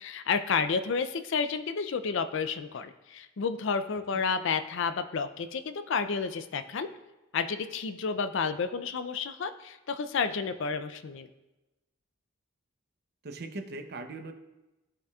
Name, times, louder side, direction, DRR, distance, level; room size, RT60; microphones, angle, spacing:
voice 1, 0.0-6.9 7.3-11.3, left 5 dB, 65° left, 11 dB, 0.4 m, -31 dB
voice 2, 13.2-14.3, right 2 dB, 55° right, 5 dB, 0.7 m, -39 dB
14.0 x 4.9 x 2.4 m, 1.0 s
head